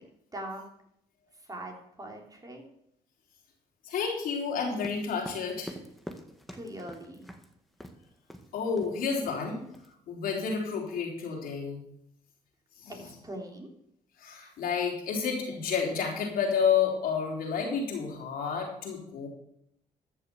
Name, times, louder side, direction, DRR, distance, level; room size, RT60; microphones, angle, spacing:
voice 1, 0.3-0.7 1.5-2.6 6.5-7.3 12.9-13.7, right 1 dB, 25° right, 1 dB, 3.6 m, -41 dB
voice 2, 3.9-5.8 8.5-9.6 10.1-11.8 12.8-13.1 14.2-19.3, left 6 dB, 70° left, -1 dB, 3.8 m, -30 dB
sound 1, 4.8-7.5 7.8-8.0 8.3-8.5 8.8-9.0 9.2-9.9, equal, ahead, 1.8 m, -44 dB
14.0 x 6.7 x 7.0 m, 0.75 s
supercardioid pair, 70°, 15 cm